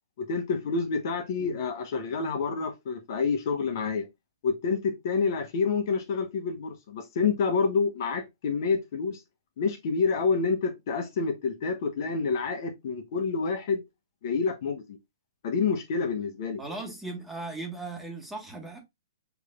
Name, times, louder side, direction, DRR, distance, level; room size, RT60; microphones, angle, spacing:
voice 1, 0.2-4.1 4.4-9.2 9.6-13.8 14.2-15.0 15.4-16.6, left 5 dB, 55° left, 1.2 m, -28 dB
voice 2, 16.6-18.8, right 3 dB, 5° right, 1.7 m, -37 dB
6.5 x 3.2 x 2.5 m
hypercardioid pair, 125°, 2 cm